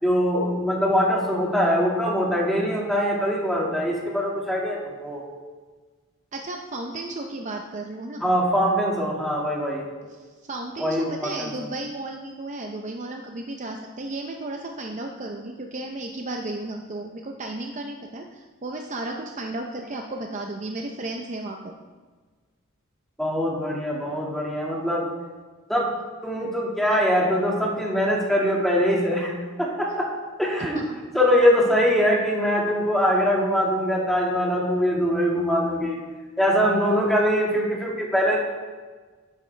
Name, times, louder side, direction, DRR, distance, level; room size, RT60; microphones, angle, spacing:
voice 1, 0.0-5.2 8.2-9.9 10.8-11.5 23.2-25.0 25.7-25.9 26.2-29.3 29.6-30.1 30.4-30.8 31.1-36.0 36.4-38.4, equal, ahead, -3 dB, 1.9 m, -22 dB
voice 2, 6.3-8.2 10.2-21.7 30.7-30.8, right 2 dB, 35° right, 2 dB, 0.6 m, -34 dB
11.5 x 8.6 x 3.3 m, 1.4 s
head